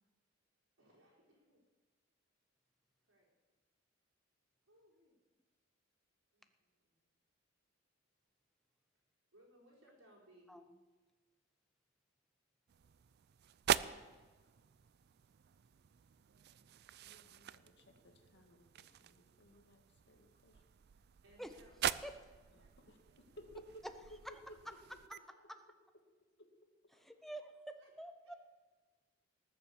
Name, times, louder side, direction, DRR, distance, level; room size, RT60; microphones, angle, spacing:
voice 1, 0.8-1.6 3.1-3.3 4.7-5.2 6.3-7.0 9.3-10.5 21.2-22.3 22.6-23.2 24.0-24.2 24.9-25.6 26.9-27.3 27.7-27.9 28.2-28.3, equal, 90° right, -3 dB, 4.9 m, -67 dB
sound 1, 12.7-25.2, right 9 dB, 55° right, 0.4 m, -44 dB
voice 2, 17.0-20.6 22.5-23.8 24.5-25.0, equal, 60° left, 3 dB, 2.0 m, -59 dB
voice 3, 27.0-27.5 28.0-28.3, right 1 dB, ahead, 7 dB, 0.8 m, -47 dB
19.0 x 7.2 x 6.9 m, 1.3 s
head